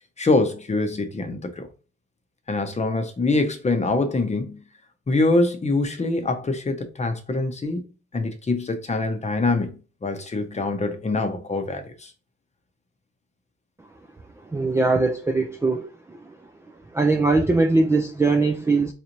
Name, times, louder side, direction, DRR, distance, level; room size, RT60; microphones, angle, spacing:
voice 1, 0.2-1.7 2.5-4.6 5.1-7.8 8.1-12.1, left 3 dB, 25° left, 0.7 m, -24 dB
voice 2, 14.5-16.2 16.9-18.9, right 3 dB, 10° right, 0.3 m, -21 dB
4.1 x 2.6 x 2.9 m
cardioid pair, 90°, 30 cm